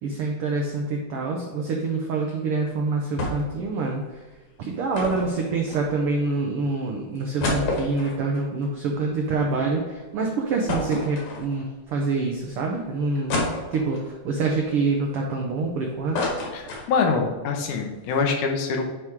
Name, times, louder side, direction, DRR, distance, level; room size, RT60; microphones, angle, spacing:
voice 1, 0.0-4.2 4.6-13.3 13.7-16.2, right 3 dB, 85° right, 0 dB, 1.2 m, -26 dB
sound 1, 3.2-3.6 3.9-4.0 4.9-6.2 6.7-6.8 7.2-9.6 10.0-10.1 10.7-11.8 12.3-12.4 13.3-14.1 14.7-15.7 15.9-17.3 17.6-17.7 17.9-18.2, left 2 dB, 60° left, 2.7 m, -30 dB
voice 2, 16.5-18.8, left 5 dB, 80° left, 2 dB, 2.4 m, -24 dB
9.2 x 3.7 x 4.7 m, 1.2 s
omnidirectional pair, 3.6 m